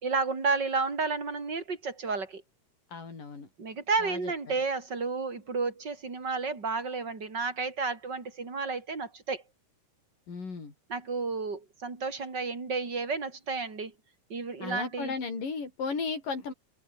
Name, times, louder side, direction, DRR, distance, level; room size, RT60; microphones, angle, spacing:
voice 1, 0.0-2.4 3.6-9.4 10.9-13.9 14.3-15.1, right 4 dB, 30° right, 4.6 m, -31 dB
voice 2, 2.9-3.5 4.0-4.3 10.3-10.7 14.6-16.5, left 4 dB, 75° left, 7.7 m, -35 dB
omnidirectional pair, 3.9 m